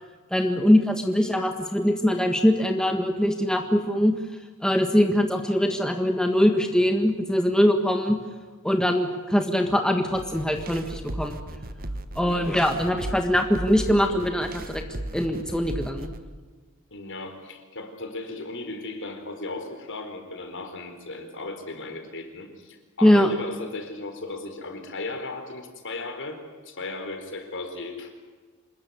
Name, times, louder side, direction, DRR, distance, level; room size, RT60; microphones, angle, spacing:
voice 1, 0.3-4.1 4.6-8.2 8.6-11.4 12.1-14.8 15.1-16.1 23.0-23.3, equal, 5° left, 4 dB, 1.5 m, -22 dB
sound 1, 10.1-16.2, right 1 dB, 40° right, 1.3 m, -36 dB
voice 2, 16.9-28.1, left 2 dB, 55° left, 6 dB, 4.2 m, -36 dB
27.0 x 21.0 x 9.4 m, 1.4 s
head